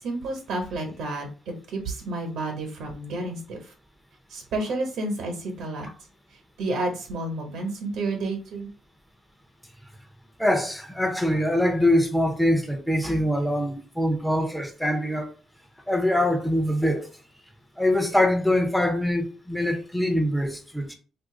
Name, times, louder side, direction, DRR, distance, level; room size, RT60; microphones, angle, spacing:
voice 1, 0.0-3.7 4.3-5.9 6.6-8.7, right 2 dB, 85° right, 1.1 m, -30 dB
voice 2, 10.4-15.3 15.9-17.1 17.8-20.9, left 1 dB, ahead, 0.6 m, -23 dB
2.6 x 2.6 x 3.7 m
cardioid pair, 90°, 0 cm